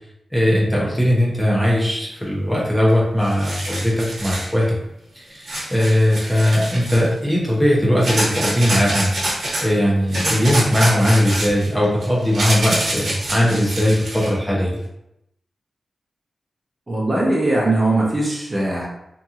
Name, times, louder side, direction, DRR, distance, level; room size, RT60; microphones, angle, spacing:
voice 1, 0.3-4.8 5.2-14.8, equal, 10° left, -5 dB, 0.7 m, -19 dB
sound 1, 2.9-3.0 3.2-4.5 5.4-7.1 8.0-9.7 10.1-14.3, right 1 dB, 70° right, 1.0 m, -26 dB
voice 2, 16.9-18.9, right 2 dB, 25° right, -4 dB, 0.8 m, -20 dB
2.9 x 2.5 x 2.4 m, 0.82 s
wide cardioid pair, 100°, 0 cm